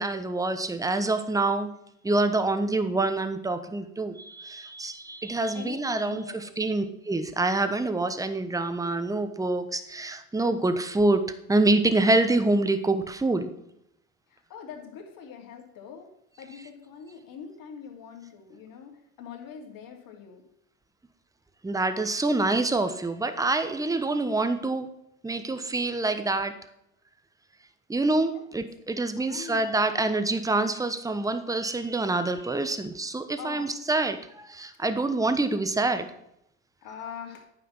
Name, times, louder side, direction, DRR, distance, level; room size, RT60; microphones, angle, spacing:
voice 1, 0.0-1.7 2.0-11.2 11.5-13.5 21.6-24.9 25.2-26.5 27.9-36.1, right 2 dB, 10° right, 9 dB, 1.0 m, -26 dB
voice 2, 5.5-6.7 14.3-16.1 16.4-20.4 28.3-28.4 29.2-30.2 33.4-33.8 36.8-37.5, left 6 dB, 55° left, 2 dB, 2.7 m, -43 dB
9.4 x 6.0 x 6.0 m, 0.78 s
hypercardioid pair, 80°, 41 cm